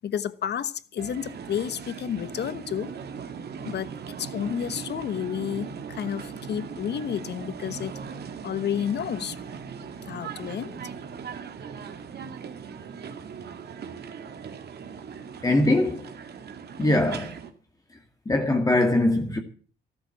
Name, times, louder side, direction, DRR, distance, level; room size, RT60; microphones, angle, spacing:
voice 1, 0.0-2.9 3.6-3.9 4.2-8.0 8.4-9.4 10.0-10.8, left 9 dB, 60° left, 1.1 m, -31 dB
sound 1, 1.0-17.5, right 6 dB, 55° right, 2.1 m, -39 dB
voice 2, 15.4-16.1 16.8-17.4 18.3-19.4, left 1 dB, 20° left, 2.2 m, -22 dB
14.0 x 12.5 x 7.4 m
cardioid pair, 90°, 20 cm